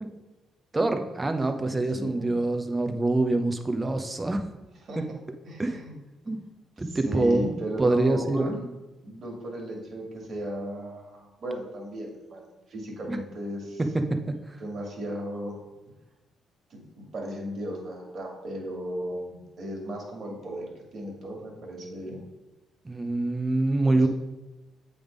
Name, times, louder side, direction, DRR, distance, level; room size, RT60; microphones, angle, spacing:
voice 1, 0.7-4.5 5.0-5.1 5.6-5.8 6.3-6.4 6.8-8.6 13.1-13.2 13.8-14.4 22.8-24.1, right 2 dB, 20° right, 7 dB, 0.8 m, -25 dB
voice 2, 1.9-2.3 4.9-5.2 5.4-6.0 6.8-8.6 9.0-12.4 12.7-13.8 14.6-15.5 16.7-20.7 20.9-22.2 23.9-24.1, equal, 55° right, -1 dB, 2.0 m, -35 dB
7.8 x 3.5 x 5.1 m, 1.1 s
cardioid pair, 90°, 0 cm